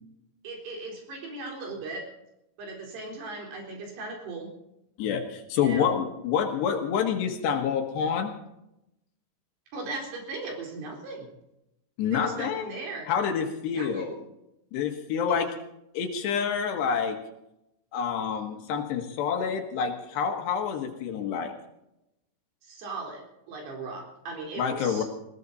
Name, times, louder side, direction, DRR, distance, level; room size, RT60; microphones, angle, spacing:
voice 1, 0.4-2.1 2.6-4.5 5.6-6.0 9.7-11.3 12.1-13.1 13.7-14.2 15.3-15.4 22.6-25.0, right 3 dB, 65° right, 1 dB, 6.0 m, -38 dB
voice 2, 5.0-8.3 12.0-12.7 13.1-14.1 14.7-15.5 16.0-17.2 17.9-21.5 24.6-25.0, left 7 dB, 70° left, 5 dB, 3.5 m, -27 dB
20.5 x 17.5 x 4.1 m, 0.85 s
omnidirectional pair, 5.2 m